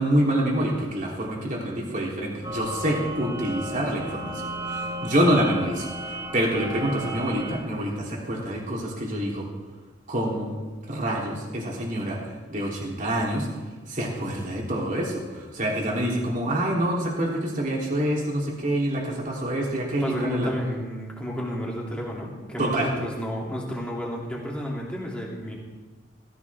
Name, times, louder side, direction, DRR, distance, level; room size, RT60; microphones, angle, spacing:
voice 1, 0.0-9.5 10.1-10.6 10.9-13.5 13.9-20.5 22.6-22.9, right 1 dB, 40° right, -2 dB, 3.3 m, -26 dB
sound 1, 2.4-7.6, right 1 dB, 20° right, 2.0 m, -34 dB
voice 2, 19.9-25.6, equal, 5° left, -3 dB, 2.9 m, -31 dB
16.5 x 15.0 x 3.6 m, 1.3 s
head